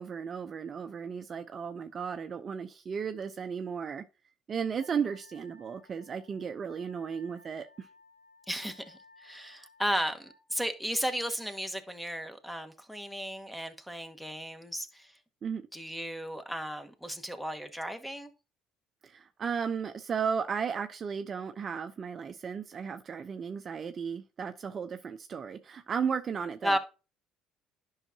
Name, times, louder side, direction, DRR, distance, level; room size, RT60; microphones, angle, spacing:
voice 1, 0.0-4.0 4.5-7.9 15.4-15.6 19.0-26.8, right 6 dB, 40° right, 0.7 m, -35 dB
Wind instrument woodwind instrument, 4.8-10.4, left 2 dB, 85° left, 2.6 m, -58 dB
voice 2, 8.5-15.1 15.7-18.3 26.6-26.8, equal, 5° left, 1.4 m, -34 dB
10.5 x 5.7 x 2.8 m
hypercardioid pair, 65°, 0 cm